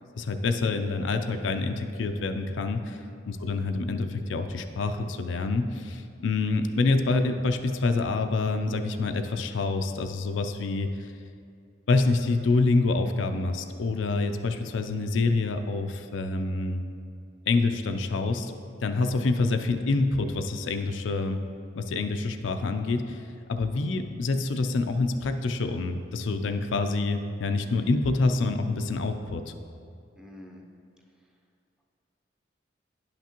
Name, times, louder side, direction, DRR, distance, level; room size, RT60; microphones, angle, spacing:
voice 1, 0.2-11.1 11.9-16.8 17.5-18.5 18.8-21.4 21.8-23.2 23.5-29.5, left 3 dB, 80° left, 7 dB, 0.4 m, -27 dB
voice 2, 2.9-3.2 30.2-30.6, equal, 5° right, -1 dB, 0.5 m, -47 dB
10.5 x 5.9 x 2.9 m, 2.4 s
head